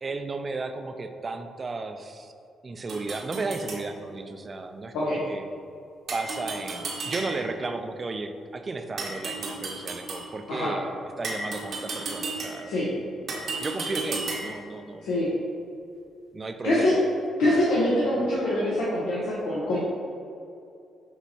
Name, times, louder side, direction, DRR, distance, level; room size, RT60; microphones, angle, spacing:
voice 1, 0.0-2.3 2.6-5.4 6.1-15.1 16.3-17.0, right 3 dB, 35° right, 7 dB, 0.4 m, -34 dB
sound 1, 2.9-3.8 6.1-7.6 9.0-10.3 11.2-12.8 13.3-14.7, right 3 dB, 65° right, 1.0 m, -34 dB
voice 2, 16.6-16.9 17.4-19.8, left 1 dB, 85° left, -7 dB, 0.7 m, -24 dB
6.2 x 3.0 x 2.7 m, 2.5 s
supercardioid pair, 70°, 0 cm